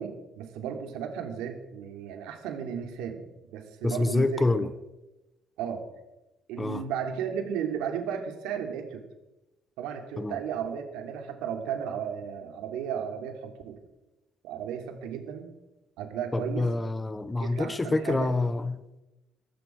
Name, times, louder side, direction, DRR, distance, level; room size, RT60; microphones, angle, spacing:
voice 1, 0.0-3.2 3.5-4.7 5.6-5.8 6.5-9.1 9.8-13.8 14.4-15.5 16.0-16.7 17.4-18.3, right 8 dB, 90° right, 5 dB, 3.1 m, -34 dB
voice 2, 3.8-4.7 6.6-6.8 10.2-10.3 16.3-19.0, left 2 dB, 10° left, 14 dB, 0.7 m, -27 dB
19.0 x 15.5 x 4.7 m, 1.0 s
cardioid pair, 180°, 0 cm